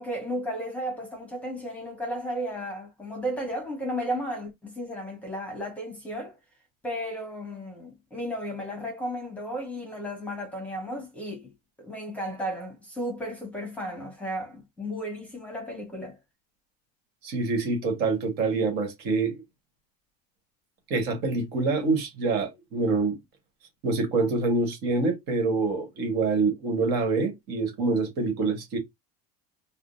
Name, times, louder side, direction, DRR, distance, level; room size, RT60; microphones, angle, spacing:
voice 1, 0.0-6.4 6.8-11.5 11.8-16.2, equal, 5° left, 1.1 m, -34 dB
voice 2, 17.2-19.4 20.9-23.2 23.8-28.8, right 3 dB, 50° right, 1.4 m, -26 dB
3.7 x 2.0 x 2.5 m
cardioid pair, 160°, 21 cm